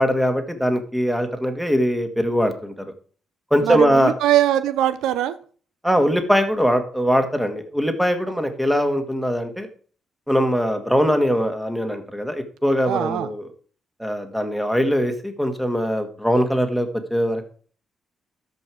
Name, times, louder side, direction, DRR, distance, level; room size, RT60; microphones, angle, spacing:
voice 1, 0.0-2.7 3.5-4.1 5.8-9.7 10.3-13.4 14.0-17.4, equal, ahead, 2.0 m, -21 dB
voice 2, 3.6-5.4 12.9-13.3, right 11 dB, 90° right, 0.7 m, -21 dB
13.5 x 5.4 x 4.8 m
cardioid pair, 90°, 0 cm